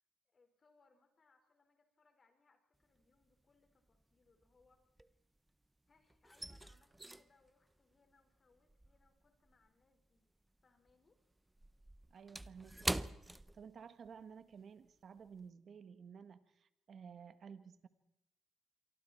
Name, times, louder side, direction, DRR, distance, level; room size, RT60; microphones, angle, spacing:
voice 1, 0.3-5.2 5.9-10.2 10.6-11.2, left 4 dB, 40° left, 5 dB, 5.1 m, -73 dB
sound 1, 2.8-3.4 3.7-5.7 5.9-10.6 10.9-14.2 14.5-14.7 15.2-15.4, right 1 dB, 10° right, 0.8 m, -45 dB
voice 2, 12.1-17.9, right 6 dB, 55° right, 11 dB, 1.5 m, -54 dB
27.0 x 24.5 x 4.5 m, 0.84 s
cardioid pair, 90°, 0 cm